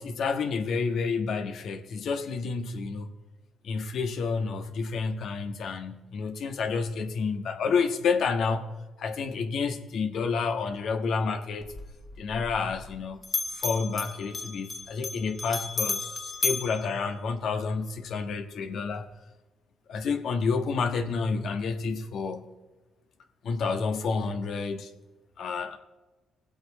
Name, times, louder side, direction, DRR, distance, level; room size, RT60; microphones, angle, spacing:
voice 1, 0.0-3.1 3.6-8.7 9.0-11.7 12.2-13.2 13.5-19.1 19.9-22.5 23.4-24.9 25.4-25.8, left 5 dB, 70° left, 1.4 m, -29 dB
Bell, 11.6-13.0 13.2-17.7, left 3 dB, 35° left, 1.6 m, -34 dB
20.0 x 8.0 x 4.1 m
cardioid pair, 90°, 0 cm